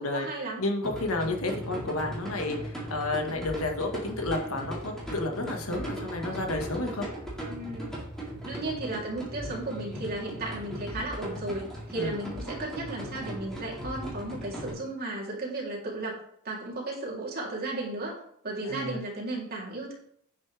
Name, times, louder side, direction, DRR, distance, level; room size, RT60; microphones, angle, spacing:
voice 1, 0.0-0.6 7.4-8.0 8.4-16.2 16.4-18.1 18.4-19.9, right 2 dB, 45° right, -3 dB, 3.4 m, -34 dB
voice 2, 0.6-7.1 11.9-12.2 18.6-19.0, left 2 dB, 70° left, 3 dB, 1.7 m, -31 dB
sound 1, 0.8-14.7, right 1 dB, 5° left, 4.1 m, -38 dB
9.6 x 9.6 x 3.5 m, 0.67 s
head